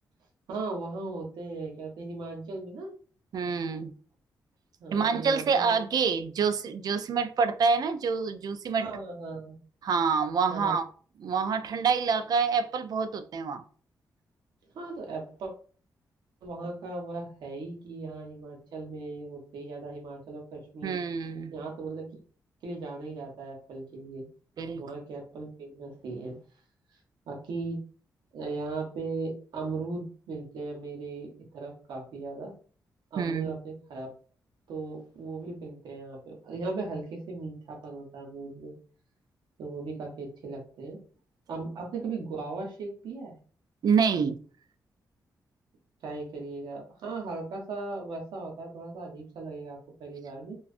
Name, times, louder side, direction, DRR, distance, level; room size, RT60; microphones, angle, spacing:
voice 1, 0.5-2.9 4.8-5.7 8.8-9.6 10.5-10.8 14.7-15.5 16.4-21.0 21.5-22.1 22.6-24.2 24.8-26.4 27.3-27.8 28.3-32.5 33.1-34.1 34.7-38.7 39.6-41.0 41.5-43.4 46.0-50.6, right 3 dB, 90° right, 0.8 m, -37 dB
voice 2, 3.3-3.9 4.9-8.9 9.8-10.8 11.2-13.6 20.8-21.5 24.6-24.8 33.2-33.5 43.8-44.4, right 5 dB, 65° right, 0.3 m, -27 dB
2.4 x 2.3 x 2.4 m
cardioid pair, 75°, 7 cm